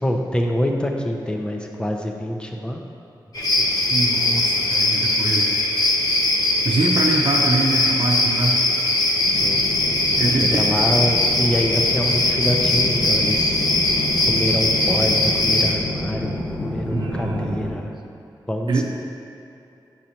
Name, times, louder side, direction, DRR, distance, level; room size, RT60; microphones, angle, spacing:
voice 1, 0.0-2.8 3.6-3.7 9.3-9.6 10.3-13.6 14.2-17.9 18.5-18.8, equal, 10° left, 1 dB, 0.6 m, -25 dB
sound 1, 3.3-15.7, left 2 dB, 50° left, 0.8 m, -20 dB
voice 2, 3.9-5.5 6.6-8.6 10.2-10.7 16.9-17.9 18.7-18.8, right 3 dB, 80° right, 0 dB, 0.7 m, -24 dB
sound 2, 9.2-17.7, left 2 dB, 75° left, 1.4 m, -29 dB
9.0 x 6.4 x 2.9 m, 2.7 s
wide cardioid pair, 155°, 8 cm